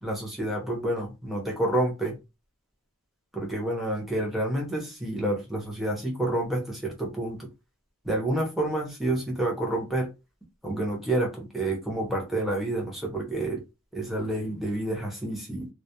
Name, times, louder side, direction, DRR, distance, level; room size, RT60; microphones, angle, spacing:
voice 1, 0.0-2.1 3.3-7.4 8.0-10.1 10.6-13.6 13.9-15.7, right 1 dB, ahead, -2 dB, 0.7 m, -29 dB
2.3 x 2.0 x 2.8 m, 0.26 s
head